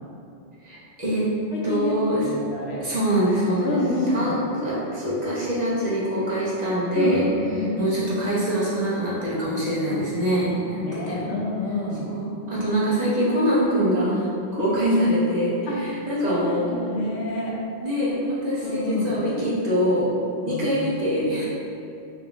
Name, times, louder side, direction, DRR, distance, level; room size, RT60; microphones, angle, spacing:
voice 1, 0.6-1.2 1.6-2.2 2.8-3.8 4.1-7.2 7.8-11.3 12.0-14.3 14.5-16.6 17.8-20.1 20.4-21.4, equal, 40° right, -9 dB, 1.0 m, -24 dB
voice 2, 1.5-2.8 3.6-4.3 7.0-8.1 9.9-10.0 10.8-12.1 14.6-14.8 15.7-15.9 16.2-17.5 18.6-19.2 20.5-20.8, left 1 dB, 75° left, -3 dB, 1.0 m, -28 dB
4.0 x 2.7 x 3.5 m, 2.6 s
omnidirectional pair, 1.1 m